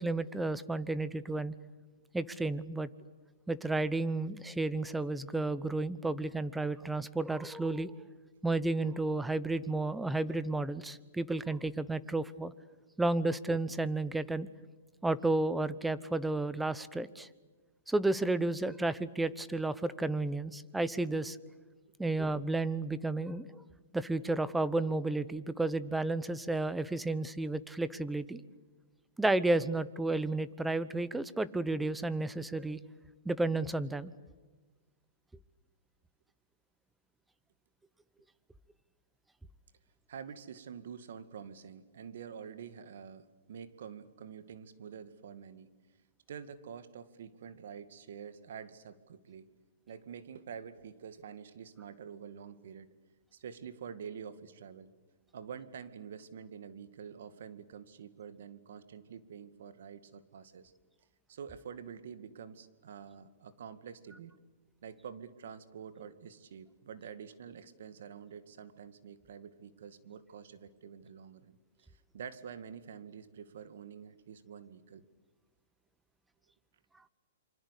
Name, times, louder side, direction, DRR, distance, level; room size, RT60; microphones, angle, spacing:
voice 1, 0.0-1.5 2.1-2.9 3.5-7.9 8.4-12.5 13.0-14.5 15.0-17.3 17.9-21.4 22.0-23.6 23.9-28.4 29.2-32.8 33.2-34.1, right 2 dB, 5° right, 17 dB, 0.9 m, -32 dB
voice 2, 40.1-45.7 46.3-49.5 49.9-52.9 53.3-54.9 55.3-60.7 61.3-64.4 64.8-75.0, right 7 dB, 70° right, 13 dB, 2.1 m, -47 dB
27.0 x 25.0 x 8.4 m, 1.3 s
hypercardioid pair, 145°, 0 cm